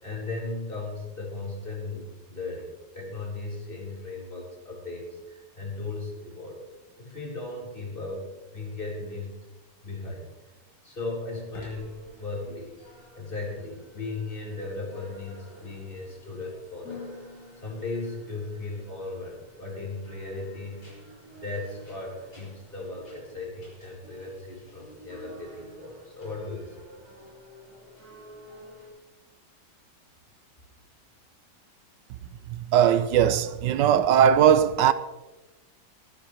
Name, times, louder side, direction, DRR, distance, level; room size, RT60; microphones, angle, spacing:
voice 1, 0.0-6.6 7.0-9.5 9.8-10.3 10.8-12.8 13.1-17.1 17.6-20.9 21.3-26.7, left 3 dB, 30° left, 3.9 m, -37 dB
sound 1, 11.2-28.9, left 1 dB, 90° left, 5.9 m, -50 dB
voice 2, 32.5-34.9, right 9 dB, 80° right, 1.2 m, -19 dB
22.5 x 10.0 x 3.1 m
omnidirectional pair, 1.9 m